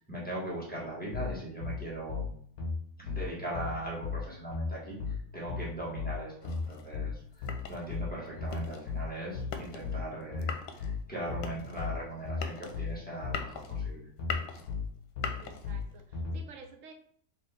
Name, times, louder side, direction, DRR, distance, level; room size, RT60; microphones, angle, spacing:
voice 1, 0.0-2.3 3.0-5.0 5.3-14.1, right 1 dB, 5° left, -6 dB, 1.2 m, -39 dB
sound 1, 1.1-16.4, left 4 dB, 65° left, 1.7 m, -36 dB
sound 2, 6.4-16.1, left 6 dB, 85° left, 1.2 m, -42 dB
voice 2, 15.4-16.9, right 4 dB, 65° right, 5 dB, 0.9 m, -51 dB
4.0 x 3.2 x 3.5 m, 0.62 s
omnidirectional pair, 1.8 m